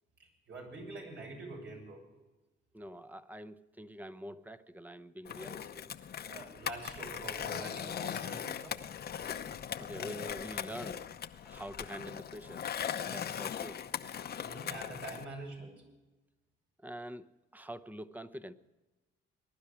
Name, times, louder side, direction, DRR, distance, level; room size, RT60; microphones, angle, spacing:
voice 1, 0.2-2.0 6.3-8.8 14.4-15.8, right 2 dB, 70° right, 0 dB, 7.0 m, -45 dB
voice 2, 2.7-5.8 9.8-11.0 11.4-12.6 13.1-13.8 16.8-17.3 17.5-18.5, equal, 10° right, 11 dB, 0.8 m, -45 dB
Skateboard, 5.3-15.2, left 8 dB, 55° left, 0.8 m, -39 dB
21.0 x 11.5 x 4.9 m, 1.1 s
cardioid pair, 90°, 20 cm